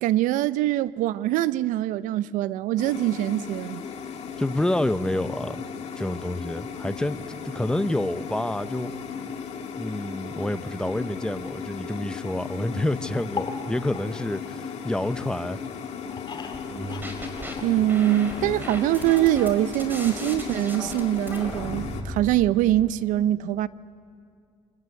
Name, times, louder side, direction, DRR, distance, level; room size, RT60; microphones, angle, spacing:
voice 1, 0.0-3.8 17.6-23.7, right 13 dB, 70° right, 0.6 m, -23 dB
sound 1, 2.8-22.0, left 6 dB, 55° left, 2.2 m, -36 dB
voice 2, 4.4-5.6 6.0-8.9 9.8-15.6, left 1 dB, 5° left, 0.8 m, -28 dB
sound 2, 13.2-15.2 15.6-18.3 18.6-18.7 18.9-19.0, left 6 dB, 35° left, 2.6 m, -39 dB
sound 3, 16.7-17.5 17.9-22.3, right 1 dB, 15° right, 4.5 m, -36 dB
25.5 x 15.0 x 9.6 m
supercardioid pair, 90°, 14 cm